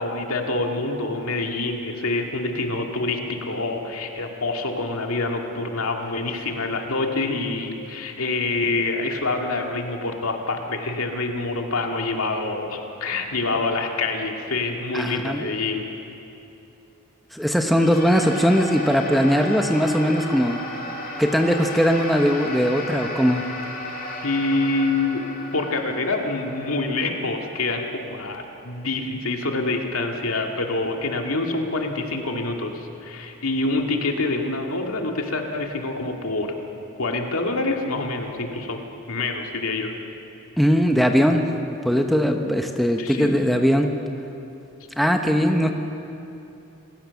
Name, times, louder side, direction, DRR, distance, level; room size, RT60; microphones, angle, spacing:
voice 1, 0.0-15.9 24.2-25.2 25.5-36.5 37.0-38.8 39.1-39.9 43.0-43.4, left 2 dB, 85° left, 2 dB, 2.3 m, -26 dB
voice 2, 14.9-15.4 17.3-20.6 21.2-23.4 40.6-43.9 45.0-45.7, equal, ahead, 4 dB, 1.0 m, -20 dB
sound 1, 17.7-28.3, left 1 dB, 40° left, 2.7 m, -34 dB
27.0 x 16.0 x 7.1 m, 2.9 s
head